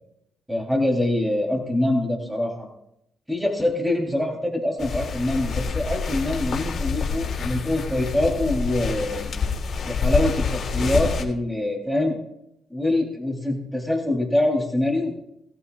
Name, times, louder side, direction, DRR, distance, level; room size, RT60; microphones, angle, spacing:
voice 1, 0.5-2.7 3.3-9.3 9.8-12.2 12.7-15.1, left 1 dB, 5° right, 1 dB, 3.6 m, -24 dB
sound 1, 4.8-11.2, left 5 dB, 55° left, 3.4 m, -27 dB
21.5 x 14.0 x 2.5 m, 0.77 s
cardioid pair, 90°, 0 cm